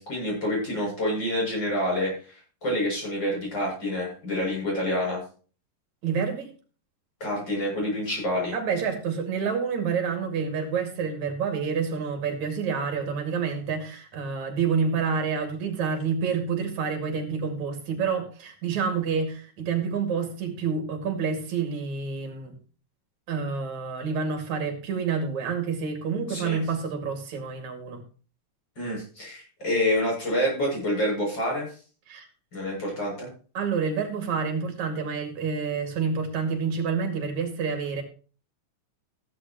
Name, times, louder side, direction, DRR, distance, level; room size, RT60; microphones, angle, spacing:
voice 1, 0.0-5.2 7.2-8.6 26.3-26.6 28.8-31.7 32.5-33.3, left 1 dB, 30° left, 8.2 m, -27 dB
voice 2, 6.0-6.5 8.5-22.5 23.3-28.0 32.1-32.3 33.6-38.0, right 6 dB, 60° right, 3.5 m, -28 dB
14.5 x 11.5 x 3.1 m
omnidirectional pair, 3.9 m